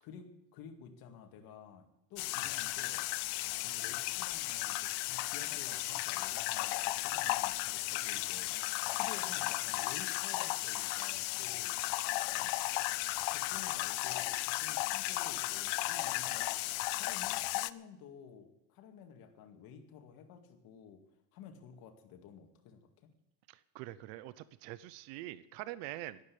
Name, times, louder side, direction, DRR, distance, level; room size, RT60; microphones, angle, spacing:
voice 1, 0.0-3.1 3.5-11.8 12.2-12.5 13.3-21.0 21.3-23.1, left 7 dB, 55° left, 5 dB, 2.1 m, -53 dB
sound 1, 2.2-17.7, left 19 dB, 75° left, 0.7 m, -35 dB
voice 2, 23.5-26.2, right 15 dB, 85° right, 16 dB, 0.8 m, -44 dB
12.5 x 10.5 x 8.6 m, 0.88 s
cardioid pair, 170°, 43 cm